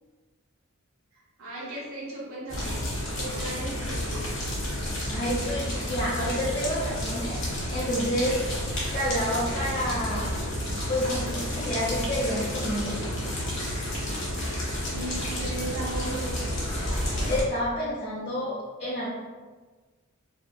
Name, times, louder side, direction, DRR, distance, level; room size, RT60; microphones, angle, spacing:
voice 1, 1.1-2.8 3.2-4.3 14.0-16.4, right 1 dB, 80° right, -5 dB, 0.7 m, -37 dB
sound 1, 2.5-17.4, equal, 60° left, 0.8 m, -31 dB
voice 2, 5.1-7.4 7.7-8.4 8.9-10.4 10.9-13.0 17.2-19.1, equal, 30° left, -9 dB, 0.5 m, -29 dB
2.6 x 2.4 x 2.2 m, 1.3 s
head